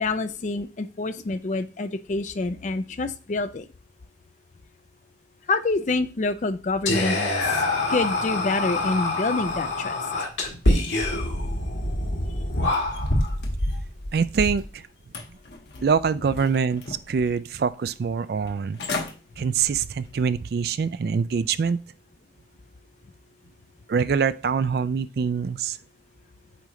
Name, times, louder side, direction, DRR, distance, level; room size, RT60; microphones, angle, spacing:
voice 1, 0.0-3.7 5.5-7.2 7.9-10.0, left 3 dB, 40° left, 10 dB, 0.4 m, -27 dB
Whispering, 6.9-13.3, left 2 dB, 80° left, 1.7 m, -25 dB
sound 1, 12.7-14.7 15.1-16.0 16.4-17.2 17.6-17.7 18.5-18.6 18.8-19.1 19.6-19.8 20.3-20.4, left 1 dB, 60° left, 1.1 m, -29 dB
voice 2, 14.1-14.8 15.8-18.8 19.4-21.8 23.9-25.8, right 6 dB, 55° right, 15 dB, 0.3 m, -24 dB
8.3 x 3.2 x 3.7 m, 0.35 s
head